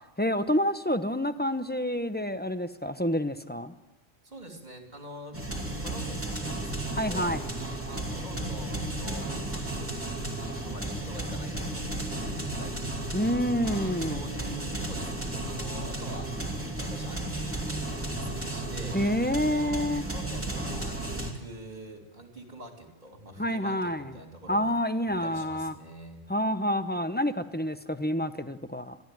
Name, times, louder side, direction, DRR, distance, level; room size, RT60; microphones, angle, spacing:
voice 1, 0.2-3.7 7.0-7.4 13.1-14.3 18.9-20.0 23.4-24.1 24.5-25.7 26.3-29.0, equal, 10° left, 10 dB, 0.6 m, -28 dB
voice 2, 4.2-7.4 7.8-10.3 10.6-13.1 13.6-16.3 16.6-19.0 19.3-24.7 25.0-26.3, right 1 dB, 35° right, 3 dB, 3.1 m, -45 dB
sound 1, 5.3-21.3, right 1 dB, 10° right, 2.8 m, -34 dB
22.5 x 15.0 x 9.2 m, 1.0 s
omnidirectional pair, 1.3 m